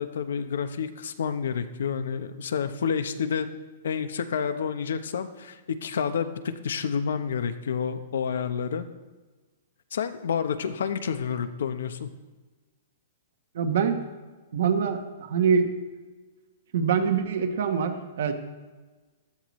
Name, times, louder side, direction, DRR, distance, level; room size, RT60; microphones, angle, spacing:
voice 1, 0.0-3.5 3.8-8.8 9.9-12.1, left 7 dB, 80° left, 10 dB, 0.9 m, -29 dB
voice 2, 13.5-14.0 14.5-15.7 16.7-18.3, right 6 dB, 55° right, 7 dB, 1.2 m, -24 dB
15.5 x 12.0 x 3.2 m, 1.3 s
hypercardioid pair, 180°, 0 cm